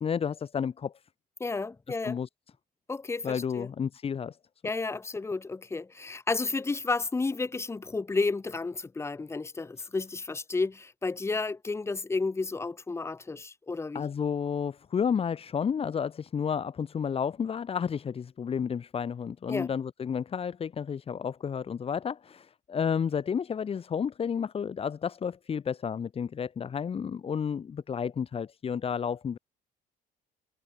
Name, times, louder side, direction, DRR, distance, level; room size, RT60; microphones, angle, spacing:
voice 1, 0.0-0.9 1.9-2.3 3.2-4.4 13.9-29.4, left 7 dB, 30° left, 2.0 m, -31 dB
voice 2, 1.4-2.2 2.9-3.7 4.6-14.0 19.5-19.7, left 3 dB, 15° left, 0.9 m, -32 dB
cardioid pair, 150°, 18 cm